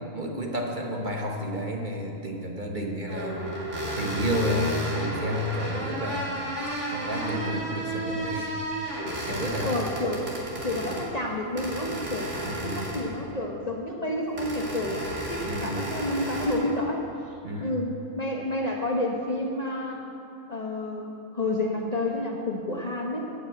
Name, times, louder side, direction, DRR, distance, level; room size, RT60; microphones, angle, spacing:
voice 1, 0.1-3.4 4.0-6.5 6.9-8.5 9.2-9.7 12.4-12.8 15.4-15.8 17.4-17.8, equal, 35° right, 0 dB, 1.1 m, -31 dB
sound 1, 3.1-11.1 11.6-13.2 14.4-16.6, equal, 55° right, 2.9 m, -32 dB
voice 2, 9.6-10.3 10.6-15.0 15.3-17.1 17.6-20.0 20.5-23.2, left 1 dB, 35° left, 0 dB, 0.9 m, -30 dB
13.0 x 6.2 x 8.5 m, 2.8 s
omnidirectional pair, 1.4 m